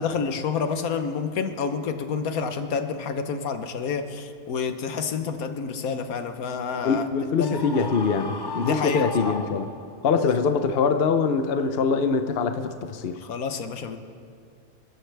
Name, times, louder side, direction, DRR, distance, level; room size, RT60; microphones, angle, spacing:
voice 1, 0.0-7.0 7.4-7.9 8.6-9.3 10.2-10.3 13.2-14.0, left 5 dB, 80° left, 8 dB, 1.4 m, -29 dB
voice 2, 6.8-9.7 10.0-13.2, left 5 dB, 50° left, 8 dB, 0.9 m, -23 dB
Screaming, 7.4-10.1, left 4 dB, 30° left, 0.4 m, -35 dB
27.0 x 13.5 x 3.4 m, 2.3 s
omnidirectional pair, 1.5 m